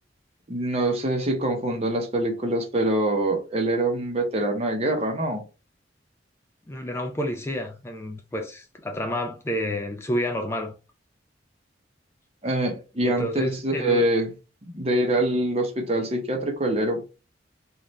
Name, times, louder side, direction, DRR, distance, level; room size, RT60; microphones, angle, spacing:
voice 1, 0.5-5.4 12.4-14.3 14.6-17.1, right 1 dB, 35° right, 0.8 m, -25 dB
voice 2, 6.7-10.7 13.0-14.0, equal, 15° left, 0.3 m, -30 dB
3.1 x 2.4 x 4.0 m
head